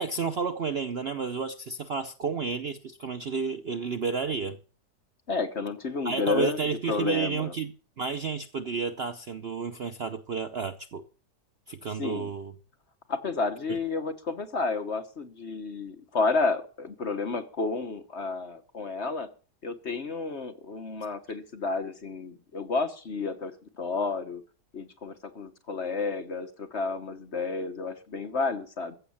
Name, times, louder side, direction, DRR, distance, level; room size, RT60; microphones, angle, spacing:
voice 1, 0.0-4.6 6.0-11.0 11.7-12.5, right 5 dB, 50° right, 0.8 m, -31 dB
voice 2, 5.3-7.5 12.0-12.3 13.1-19.3 19.6-23.5 23.8-24.4 24.7-29.0, left 4 dB, 45° left, 1.4 m, -31 dB
15.0 x 6.8 x 8.6 m
omnidirectional pair, 1.7 m